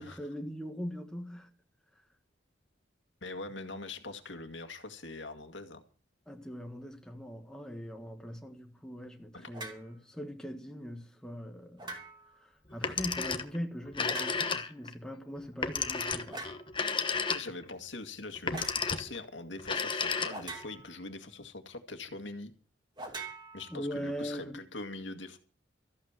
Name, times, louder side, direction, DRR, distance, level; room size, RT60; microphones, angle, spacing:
voice 1, 0.0-1.5 6.3-12.0 12.4-16.4 23.7-24.6, equal, 5° left, 1.4 m, -41 dB
voice 2, 3.2-5.8 9.3-9.5 17.3-22.5 23.5-25.4, left 3 dB, 75° left, 2.0 m, -43 dB
sound 1, 9.5-9.9 11.8-12.4 14.0-14.7 16.3-16.7 18.5-18.8 20.3-21.1 23.0-24.1, right 3 dB, 25° right, 2.8 m, -43 dB
Telephone, 12.7-13.6 13.9-14.9 15.6-17.7 18.4-19.2 19.6-20.6, left 5 dB, 25° left, 1.1 m, -32 dB
14.0 x 8.4 x 7.5 m
head